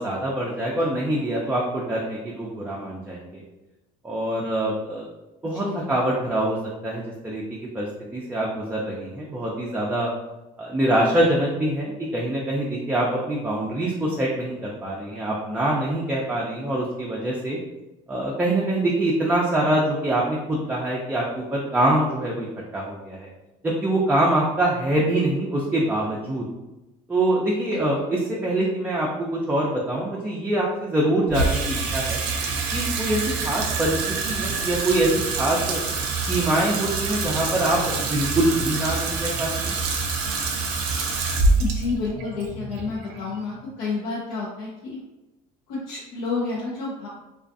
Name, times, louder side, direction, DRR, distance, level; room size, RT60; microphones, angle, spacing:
voice 1, 0.0-3.4 4.0-5.1 5.4-6.6 6.8-7.9 8.1-10.1 10.6-17.6 18.1-22.5 22.7-23.3 23.6-26.5 27.1-32.2 32.7-34.0 34.2-35.8 36.2-39.8, right 1 dB, 10° right, -4 dB, 0.4 m, -24 dB
voice 2, 5.6-5.9 27.7-28.0 41.6-45.0 45.7-47.1, left 4 dB, 85° left, -6 dB, 0.6 m, -30 dB
Water tap faucet / Sink (filling or washing), 31.3-43.7, right 3 dB, 75° right, 0.5 m, -26 dB
2.4 x 2.3 x 2.4 m, 1.0 s
cardioid pair, 110°, 16 cm